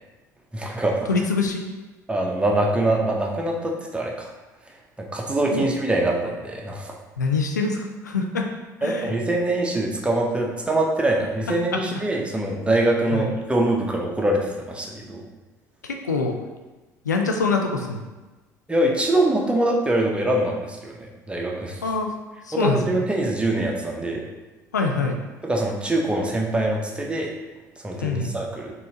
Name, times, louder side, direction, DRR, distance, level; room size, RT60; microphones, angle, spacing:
voice 1, 0.5-1.1 2.1-4.3 5.0-6.9 8.8-15.2 18.7-21.0 21.3-21.8 22.5-24.2 25.4-27.3 27.8-28.7, right 1 dB, 10° right, -1 dB, 0.8 m, -23 dB
voice 2, 1.1-1.7 5.5-5.7 7.2-8.5 8.8-9.1 11.7-11.8 13.1-13.3 15.8-16.4 17.1-18.0 21.8-22.1 22.5-23.0 24.7-25.2 28.0-28.4, left 4 dB, 90° left, 3 dB, 0.4 m, -24 dB
4.0 x 3.6 x 2.7 m, 1.1 s
figure-of-eight pair, 60°, 9 cm